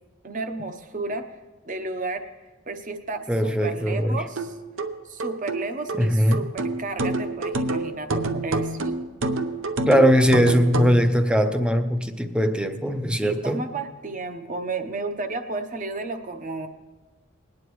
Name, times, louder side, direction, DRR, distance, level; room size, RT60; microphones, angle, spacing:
voice 1, 0.2-1.2 1.7-2.2 2.7-4.6 5.1-8.8 13.2-16.7, right 3 dB, 40° right, 8 dB, 0.8 m, -32 dB
voice 2, 3.3-4.2 6.0-6.5 9.9-13.6, equal, 5° right, 7 dB, 0.6 m, -20 dB
sound 1, 4.4-11.0, right 2 dB, 70° right, 0.7 m, -28 dB
20.5 x 9.6 x 3.1 m, 1.2 s
head